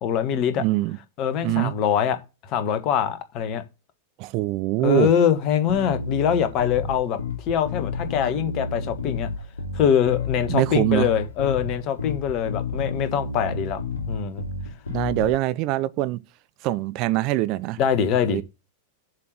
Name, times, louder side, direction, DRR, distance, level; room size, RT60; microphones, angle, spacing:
voice 1, 0.0-0.6 1.2-2.2 2.5-3.6 4.8-7.2 7.5-9.3 9.7-13.8 14.1-14.4 17.8-18.4, left 8 dB, 40° left, 1.4 m, -23 dB
voice 2, 0.6-1.0 1.4-1.8 4.2-5.1 10.5-11.1 14.9-16.2 16.6-17.8 18.3-18.4, right 16 dB, 40° right, 0.4 m, -23 dB
Bass guitar, 5.7-15.3, left 3 dB, 65° left, 2.6 m, -31 dB
7.3 x 5.8 x 6.4 m
figure-of-eight pair, 90°, 0 cm